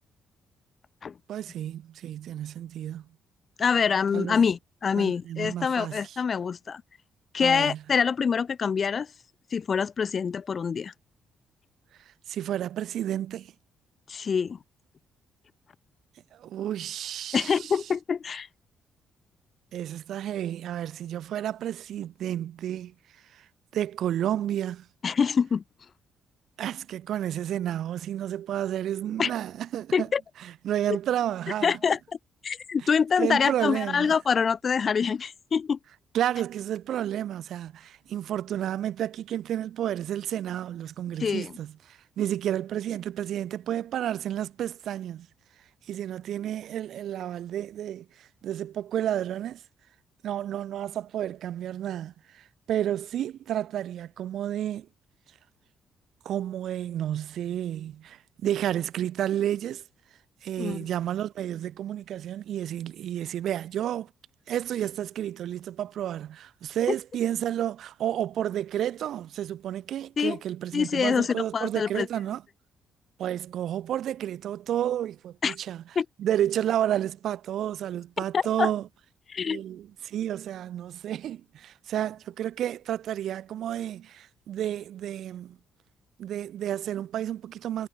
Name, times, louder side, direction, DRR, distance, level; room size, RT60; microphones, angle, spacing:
voice 1, 1.3-3.0 4.1-4.4 4.9-6.0 7.4-7.8 12.3-13.5 16.4-17.7 19.7-22.9 23.3-23.4 23.7-24.8 26.6-30.1 30.4-31.8 33.2-34.2 36.1-41.7 42.2-45.3 45.9-49.6 50.2-54.9 56.2-59.8 60.4-64.1 64.5-72.4 73.2-75.8 76.2-78.9 79.4-85.6 86.2-87.9, right 11 dB, 70° right, 2.8 m, -31 dB
voice 2, 3.6-6.8 7.3-9.1 9.5-10.9 14.1-14.6 17.3-18.5 25.0-25.6 29.2-29.3 29.9-30.2 31.6-32.0 32.4-35.8 41.2-41.5 60.6-60.8 70.2-70.4 70.7-72.1 75.4-75.6 76.0-76.1 78.3-78.7 79.3-79.6, left 6 dB, 45° left, 0.5 m, -25 dB
cardioid pair, 90°, 0 cm